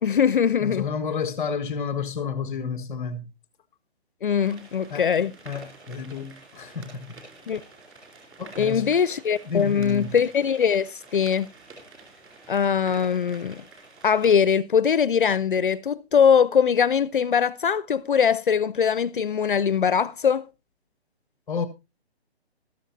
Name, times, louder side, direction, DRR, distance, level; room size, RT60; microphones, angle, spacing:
voice 1, 0.0-0.8 4.2-5.3 7.5-7.6 8.6-11.5 12.5-13.6 14.0-20.4, left 7 dB, 50° left, 0.6 m, -21 dB
voice 2, 0.6-3.3 4.9-7.2 8.4-8.9 9.4-10.2 21.5-21.6, left 6 dB, 5° left, 0.6 m, -31 dB
sound 1, 4.4-14.3, right 3 dB, 10° right, 3.2 m, -48 dB
14.0 x 12.5 x 2.7 m
hypercardioid pair, 165°, 33 cm